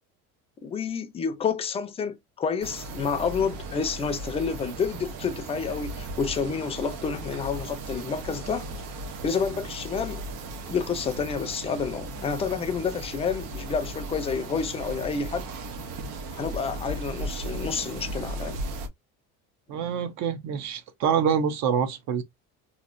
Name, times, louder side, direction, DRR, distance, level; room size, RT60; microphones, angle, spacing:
voice 1, 0.6-8.7 9.2-10.2 10.7-15.5 16.3-18.6, left 5 dB, 20° left, 0.5 m, -29 dB
sound 1, 2.6-18.9, right 2 dB, 90° right, 1.0 m, -36 dB
voice 2, 19.7-22.2, right 7 dB, 60° right, 0.7 m, -26 dB
3.0 x 2.6 x 2.5 m
cardioid pair, 155°, 31 cm